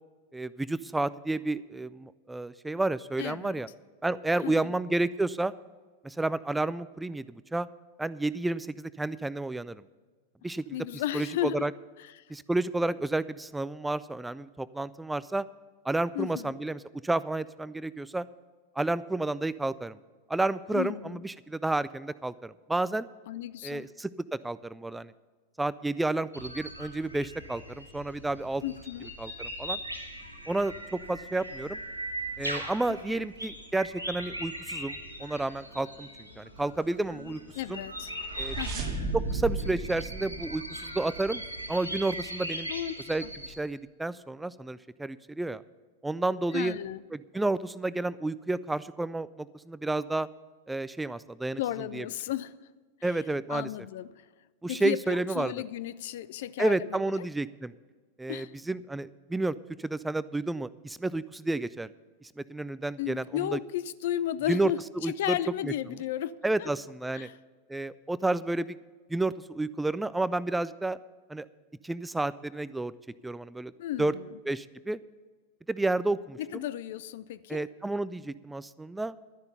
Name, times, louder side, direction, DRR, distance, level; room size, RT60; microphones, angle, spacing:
voice 1, 0.3-3.7 4.0-5.5 6.0-7.7 8.0-9.8 10.4-10.6 11.1-11.7 12.3-15.4 15.8-18.3 18.8-20.0 20.3-23.1 23.6-25.1 25.6-28.6 29.2-29.8 30.5-31.8 32.4-36.1 36.4-37.4 37.7-37.8 38.4-38.6 39.1-41.4 41.7-42.7 43.1-45.6 46.0-46.7 47.1-50.3 50.7-51.6 51.9-52.1 53.0-53.7 54.6-55.5 56.6-57.7 58.2-61.9 62.2-63.6 64.5-65.4 65.6-65.7 66.4-67.3 67.7-68.7 69.1-71.0 71.3-71.5 71.8-72.9 73.2-73.7 74.0-74.1 74.5-75.0 75.7-76.6 77.5-79.1, right 2 dB, 5° right, 0.3 m, -31 dB
voice 2, 3.2-3.6 4.4-4.8 10.7-11.7 12.0-12.2 16.1-16.6 20.7-21.2 23.3-23.9 28.6-29.1 32.9-33.3 37.5-38.1 38.6-39.0 42.7-42.9 43.2-43.3 46.5-47.0 51.6-52.5 53.0-53.2 53.5-54.1 54.7-57.0 58.3-58.5 63.0-66.7 67.1-67.4 73.8-74.3 76.4-77.7, left 12 dB, 55° left, 0.5 m, -34 dB
sound 1, 26.3-43.6, right 1 dB, 90° right, 1.8 m, -40 dB
sound 2, 37.8-41.4, right 3 dB, 35° right, 1.6 m, -35 dB
12.5 x 10.5 x 5.5 m
figure-of-eight pair, 90°, 0 cm